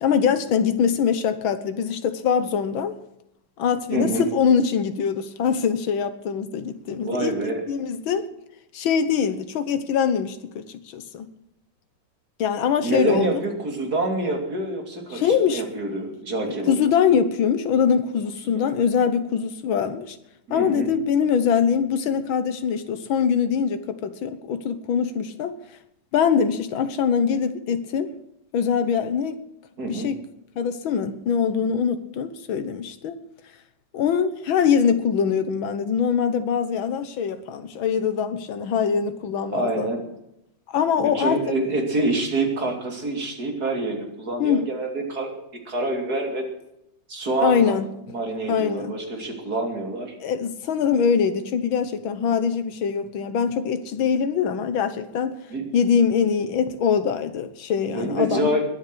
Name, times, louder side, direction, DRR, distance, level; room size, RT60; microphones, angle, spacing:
voice 1, 0.0-2.9 3.6-8.2 8.7-11.3 12.4-13.4 15.1-15.6 16.7-20.2 20.5-25.6 26.1-28.1 28.5-29.4 29.9-30.2 30.6-33.2 33.9-39.9 40.7-41.4 44.4-44.7 47.4-47.9 48.5-49.0 50.2-55.3 55.7-58.5, left 7 dB, 90° left, 10 dB, 1.9 m, -23 dB
voice 2, 3.9-4.3 7.0-7.6 12.8-16.8 18.4-18.7 20.5-20.9 29.8-30.1 39.5-40.0 41.0-45.3 45.7-46.4 47.1-47.8 48.1-50.2 55.5-55.6 57.9-58.7, right 2 dB, 50° right, 3 dB, 3.5 m, -26 dB
21.0 x 8.6 x 6.3 m, 0.82 s
omnidirectional pair, 2.1 m